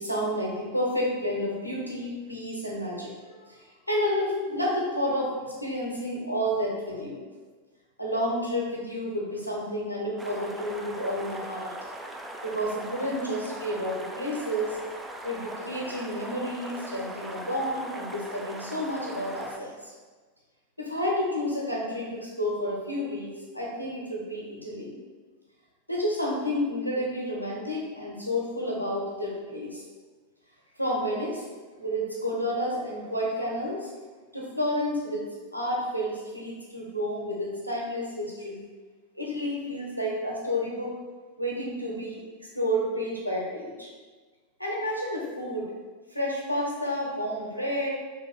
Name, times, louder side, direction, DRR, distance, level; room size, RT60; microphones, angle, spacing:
voice 1, 0.0-3.6 3.9-7.2 8.0-11.7 12.4-14.8 15.2-19.9 20.8-25.0 25.9-29.8 30.8-31.5 31.8-33.9 34.3-35.3 35.5-38.7 39.1-41.0 41.4-42.2 42.5-43.9 44.6-45.7 46.1-47.9, equal, 90° left, -3 dB, 0.9 m, -30 dB
sound 1, 10.2-19.6, right 1 dB, 10° right, 0.4 m, -40 dB
3.3 x 3.0 x 3.7 m, 1.4 s
figure-of-eight pair, 90°, 0 cm